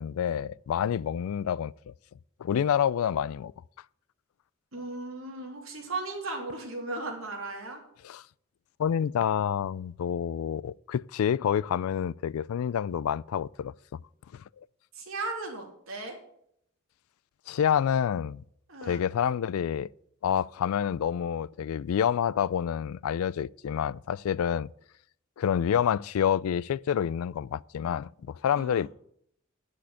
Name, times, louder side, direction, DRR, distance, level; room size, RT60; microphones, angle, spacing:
voice 1, 0.0-1.7 2.4-3.5 8.0-8.2 8.8-13.7 14.3-14.4 17.5-18.4 18.8-19.9 20.2-24.7 25.4-28.9, left 8 dB, 85° left, 0.3 m, -28 dB
voice 2, 4.7-7.8 14.9-16.2 18.7-19.0 28.6-28.8, right 2 dB, 80° right, 3.2 m, -36 dB
10.0 x 6.5 x 8.2 m
head